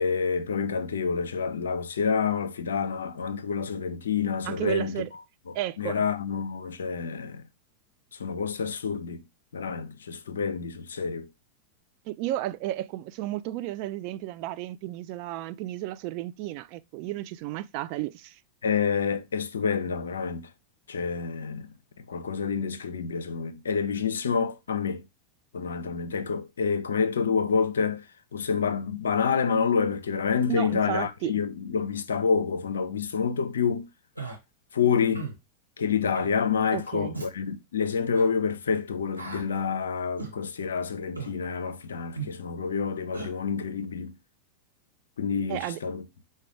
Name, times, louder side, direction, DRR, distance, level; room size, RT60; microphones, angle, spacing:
voice 1, 0.0-4.9 5.5-7.4 8.2-9.2 9.5-11.3 18.6-20.5 20.9-21.7 22.1-25.0 25.5-28.0 28.3-33.9 34.7-35.3 35.8-44.1 45.2-46.0, left 6 dB, 65° left, 0.5 m, -28 dB
voice 2, 4.4-5.1 5.5-6.0 12.1-18.4 30.5-31.4 36.7-37.2 45.5-45.8, right 15 dB, 45° right, 0.3 m, -33 dB
Human voice, 34.2-34.4 35.1-35.4 36.1-36.3 37.1-37.3 38.1-38.3 39.2-39.5 40.2-40.4 41.2-41.4 42.2-42.3 43.1-43.3, right 4 dB, 90° right, 1.2 m, -36 dB
4.8 x 2.2 x 4.6 m
figure-of-eight pair, 90°, 0 cm